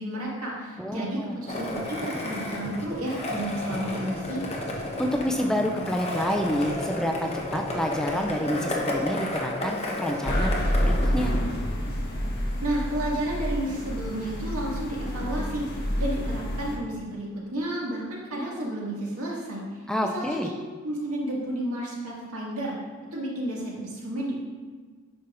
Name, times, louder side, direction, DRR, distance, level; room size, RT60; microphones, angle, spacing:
voice 1, 0.0-4.4 12.6-17.3 17.5-19.8 20.1-20.5 20.8-22.7 23.1-24.3, right 1 dB, 80° right, -5 dB, 2.0 m, -31 dB
voice 2, 0.8-1.3 5.0-10.5 10.8-11.3 19.9-20.5, equal, 5° left, 2 dB, 0.3 m, -28 dB
Skateboard, 1.5-11.3, left 1 dB, 30° left, 0.9 m, -32 dB
sound 1, 10.2-16.8, equal, 45° left, 1.2 m, -28 dB
9.6 x 5.5 x 2.5 m, 1.5 s
head